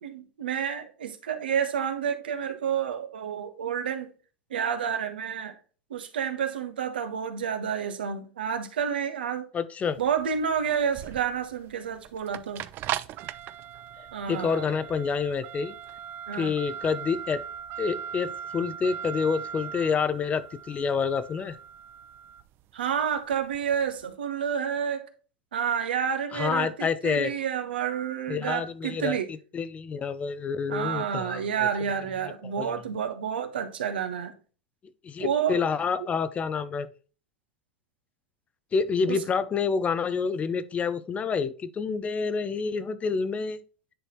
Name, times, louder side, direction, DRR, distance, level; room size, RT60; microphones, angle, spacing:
voice 1, 0.0-4.1 4.5-5.5 5.9-9.5 10.0-12.6 14.1-14.7 16.3-16.6 22.7-25.0 25.5-29.3 30.7-34.3 35.2-35.7 36.0-36.1 39.1-39.2, right 8 dB, 80° right, 1.2 m, -29 dB
voice 2, 9.5-10.0 14.3-15.7 16.3-17.4 17.8-21.6 26.3-27.3 28.3-31.7 32.4-32.8 35.0-36.9 38.7-43.6, left 5 dB, 25° left, 0.7 m, -28 dB
sound 1, 9.9-24.0, right 9 dB, 45° right, 0.5 m, -39 dB
10.0 x 4.2 x 3.1 m
hypercardioid pair, 90°, 5 cm